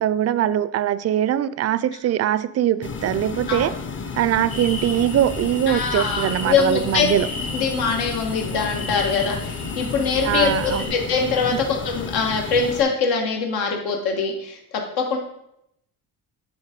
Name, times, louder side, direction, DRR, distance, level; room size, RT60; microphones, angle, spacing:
voice 1, 0.0-3.8 4.2-7.3 10.2-10.9 11.5-11.6, right 11 dB, 45° right, 16 dB, 0.4 m, -22 dB
sound 1, 2.8-12.8, left 5 dB, 30° left, 0.7 m, -32 dB
sound 2, 4.5-10.9, left 2 dB, 60° left, 2.3 m, -34 dB
voice 2, 5.7-7.1 7.5-14.6 15.0-15.2, left 5 dB, 85° left, 2 dB, 1.4 m, -23 dB
9.3 x 4.0 x 5.0 m, 0.78 s
cardioid pair, 100°, 37 cm